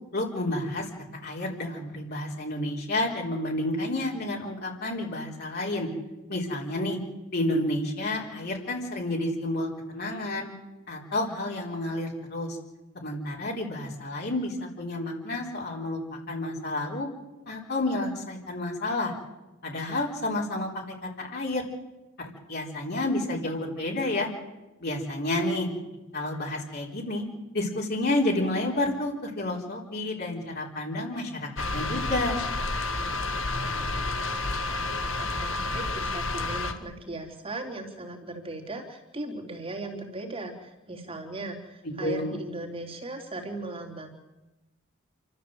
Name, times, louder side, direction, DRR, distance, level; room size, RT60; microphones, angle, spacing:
voice 1, 0.1-0.9 1.2-5.9 6.3-7.0 7.3-10.5 10.9-12.6 12.9-17.1 17.5-19.1 19.6-21.6 22.5-24.3 24.8-25.7 26.1-27.2 27.5-32.4 41.8-42.4, left 1 dB, 50° left, -2 dB, 4.0 m, -30 dB
sound 1, 31.6-36.7, left 2 dB, 65° left, 1.7 m, -30 dB
voice 2, 33.6-34.5 35.0-44.1, right 2 dB, 25° right, 1 dB, 3.5 m, -38 dB
28.5 x 13.5 x 7.9 m, 1.1 s
head